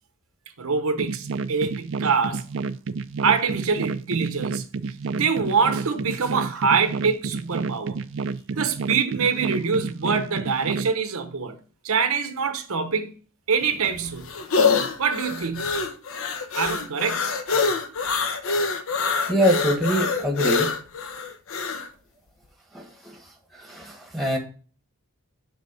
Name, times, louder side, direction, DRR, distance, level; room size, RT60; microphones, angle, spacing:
voice 1, 0.6-2.4 3.2-4.6 5.1-8.0 8.6-11.6 11.8-13.1 13.5-14.3 15.0-15.8 16.6-17.3, right 5 dB, 75° right, 0.8 m, -24 dB
sound 1, 1.0-10.9, right 4 dB, 55° right, 0.4 m, -30 dB
sound 2, 13.6-21.9, left 4 dB, 70° left, 0.8 m, -25 dB
voice 2, 19.3-20.7 22.7-23.2 23.5-24.4, equal, ahead, 1.3 m, -24 dB
6.3 x 3.9 x 5.5 m
head